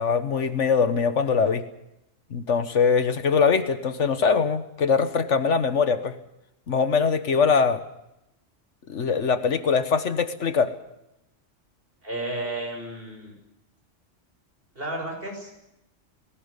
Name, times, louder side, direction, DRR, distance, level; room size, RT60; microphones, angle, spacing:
voice 1, 0.0-1.7 2.3-6.1 6.7-7.8 8.9-10.7, left 5 dB, 65° left, 12 dB, 1.5 m, -22 dB
voice 2, 12.0-13.3 14.7-15.6, right 1 dB, 45° right, 2 dB, 6.7 m, -32 dB
19.0 x 17.0 x 9.7 m, 0.87 s
omnidirectional pair, 1.3 m